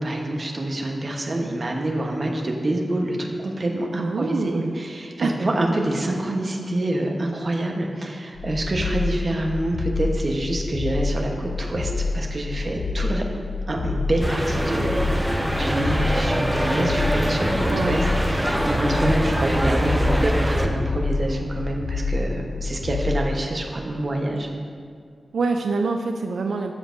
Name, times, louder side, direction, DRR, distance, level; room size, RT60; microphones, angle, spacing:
voice 1, 0.0-13.2 13.7-24.5, right 1 dB, 45° right, 1 dB, 1.0 m, -26 dB
voice 2, 4.0-4.8 5.2-5.4 17.7-18.0 25.3-26.7, right 4 dB, 90° right, 4 dB, 0.4 m, -25 dB
sound 1, 8.4-23.3, left 3 dB, 75° left, 0.3 m, -27 dB
sound 2, 14.2-20.7, equal, 5° right, 0.6 m, -23 dB
13.0 x 7.0 x 2.6 m, 2.2 s
wide cardioid pair, 120°, 0 cm